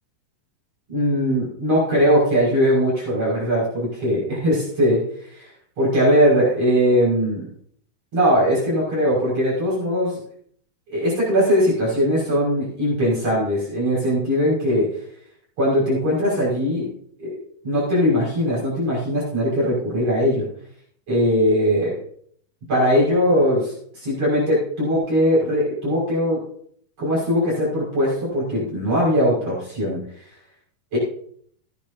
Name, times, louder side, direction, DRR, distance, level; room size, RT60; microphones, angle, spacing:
voice 1, 0.9-5.5 5.8-7.5 8.1-10.2 10.9-15.0 15.6-16.9 17.2-17.4 17.6-20.5 21.1-22.0 22.7-26.4 27.0-30.0 30.9-31.0, equal, 40° right, -6 dB, 7.0 m, -20 dB
16.5 x 11.5 x 2.8 m, 0.63 s
omnidirectional pair, 4.1 m